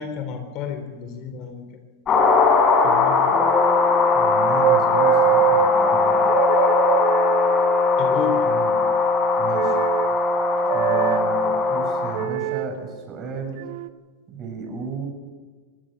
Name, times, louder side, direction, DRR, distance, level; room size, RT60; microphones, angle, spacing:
voice 1, 0.0-1.6 2.8-3.4 8.0-8.4, left 7 dB, 45° left, 7 dB, 3.8 m, -31 dB
sound 1, 2.1-12.3, left 5 dB, 30° left, 5.0 m, -21 dB
sound 2, 3.3-12.3, left 2 dB, 10° left, 1.0 m, -23 dB
voice 2, 4.1-6.3 8.5-8.8 9.4-9.8 10.6-13.6 14.3-15.1, right 3 dB, 30° right, 2 dB, 7.4 m, -33 dB
sound 3, 4.6-5.7 6.3-8.0 9.5-10.1 10.7-11.2 12.1-12.7 13.6-13.9, right 13 dB, 60° right, 1.1 m, -24 dB
24.0 x 18.0 x 6.7 m, 1.4 s
hypercardioid pair, 120°, 0 cm